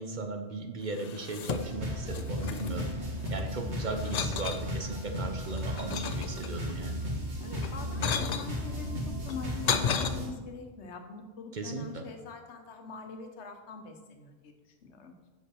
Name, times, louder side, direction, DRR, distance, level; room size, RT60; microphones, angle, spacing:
voice 1, 0.0-2.9 3.3-7.0 11.5-12.0, right 3 dB, 50° right, 4 dB, 0.7 m, -37 dB
sound 1, 0.9-1.9 2.1-3.5 4.0-4.6 5.2-6.8 7.5-8.5 9.2-10.1, left 7 dB, 60° left, 0.4 m, -33 dB
sound 2, 1.5-10.3, equal, 80° right, 1.9 m, -35 dB
voice 2, 7.4-14.5 14.8-15.1, left 5 dB, 85° left, 5 dB, 1.2 m, -44 dB
5.4 x 5.1 x 6.1 m, 1.2 s
omnidirectional pair, 1.1 m